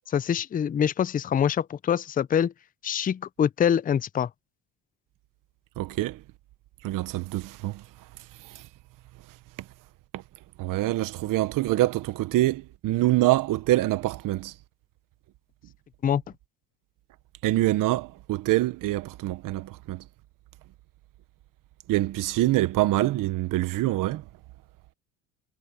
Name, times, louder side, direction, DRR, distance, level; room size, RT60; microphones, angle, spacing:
voice 1, 0.1-2.5 2.8-4.3 16.0-16.2, left 8 dB, 25° left, 0.5 m, -25 dB
voice 2, 5.8-6.2 6.8-7.8 10.6-14.5 17.4-20.0 21.9-24.2, right 16 dB, 65° right, 1.1 m, -25 dB
cardioid pair, 105°, 35 cm